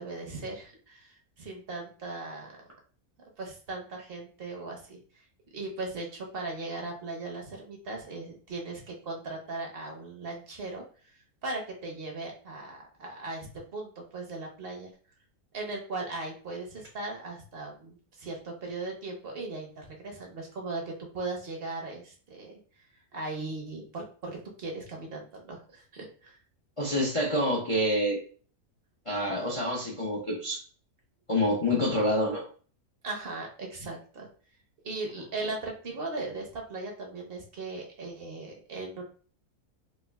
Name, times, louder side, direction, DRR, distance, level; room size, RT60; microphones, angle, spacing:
voice 1, 0.0-2.6 3.4-5.0 5.5-10.8 11.4-14.9 15.5-22.6 23.1-26.4 33.0-34.3 34.8-39.0, right 2 dB, 50° right, 0 dB, 0.8 m, -38 dB
voice 2, 26.8-28.2 29.1-30.6 31.3-32.4, left 1 dB, 55° left, -4 dB, 0.3 m, -27 dB
4.4 x 2.4 x 2.3 m, 0.42 s
omnidirectional pair, 1.7 m